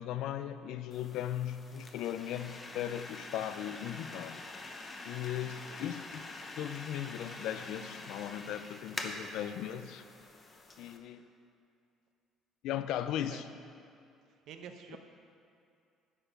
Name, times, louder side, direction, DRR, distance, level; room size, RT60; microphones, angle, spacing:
voice 1, 0.0-4.4 5.0-6.2 6.6-10.0 10.8-11.2 12.6-13.5 14.9-15.0, left 11 dB, 70° left, 11 dB, 0.4 m, -37 dB
sound 1, 0.9-11.0, left 2 dB, 25° left, 0.7 m, -46 dB
voice 2, 14.5-15.0, right 7 dB, 60° right, 6 dB, 0.8 m, -48 dB
10.0 x 6.8 x 5.2 m, 2.4 s
cardioid pair, 155°, 0 cm